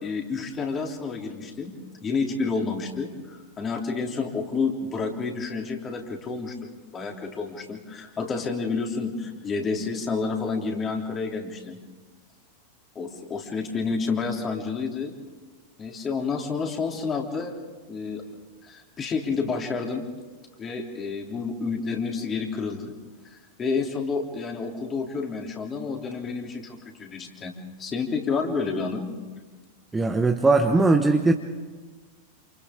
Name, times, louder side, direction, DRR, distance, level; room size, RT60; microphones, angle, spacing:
voice 1, 0.0-1.7 2.0-11.8 12.9-15.1 15.8-17.5 17.9-18.2 18.6-20.0 20.6-22.9 23.2-29.1, left 4 dB, 25° left, 2 dB, 3.3 m, -29 dB
voice 2, 29.9-31.3, right 3 dB, 10° right, 5 dB, 1.1 m, -19 dB
28.5 x 28.0 x 3.8 m, 1.3 s
figure-of-eight pair, 90°, 0 cm